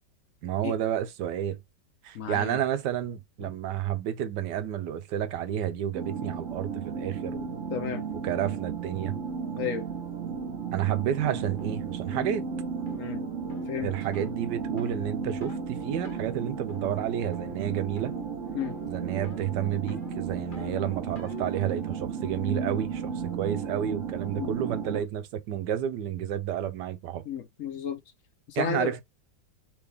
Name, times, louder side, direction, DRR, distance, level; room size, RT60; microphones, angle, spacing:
voice 1, 0.4-1.6 2.0-7.4 8.2-9.1 10.7-12.5 13.8-18.1 18.9-23.1 23.4-27.2 28.6-29.0, right 10 dB, 85° right, 1.4 m, -30 dB
voice 2, 2.1-2.6 3.4-3.5 7.7-8.1 9.5-9.9 13.0-13.2 13.7-13.9 18.5-18.8 24.3-24.6 27.2-28.0 28.5-28.9, left 8 dB, 60° left, 1.0 m, -33 dB
sound 1, 5.9-25.0, right 6 dB, 50° right, 1.3 m, -34 dB
sound 2, 11.6-11.8 12.2-12.4 12.9-13.1 13.5-13.7 14.1-14.4 14.8-15.0 15.4-15.7 16.0-16.3 16.7-17.0 17.3-17.7 18.0-18.3 18.6-19.0 19.2-21.6, left 5 dB, 35° left, 1.0 m, -46 dB
4.6 x 3.5 x 3.2 m
omnidirectional pair, 1.8 m